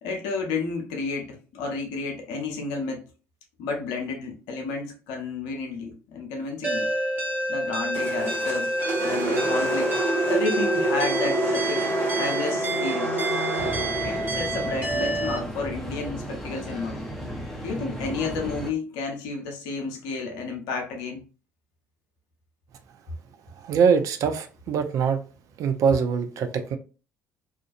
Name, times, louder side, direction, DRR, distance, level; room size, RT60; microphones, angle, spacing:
voice 1, 0.0-3.0 3.6-6.9 7.5-9.9 10.3-13.1 14.0-17.0 17.6-21.2, left 4 dB, 65° left, 0.6 m, -31 dB
sound 1, 6.6-15.4, right 1 dB, 25° right, 1.1 m, -28 dB
sound 2, 7.9-16.2, right 2 dB, 80° right, 0.9 m, -28 dB
sound 3, 13.6-18.7, equal, 5° left, 0.6 m, -35 dB
voice 2, 23.6-25.2 25.6-26.8, right 6 dB, 50° right, 0.4 m, -23 dB
2.4 x 2.2 x 2.4 m
figure-of-eight pair, 50°, 7 cm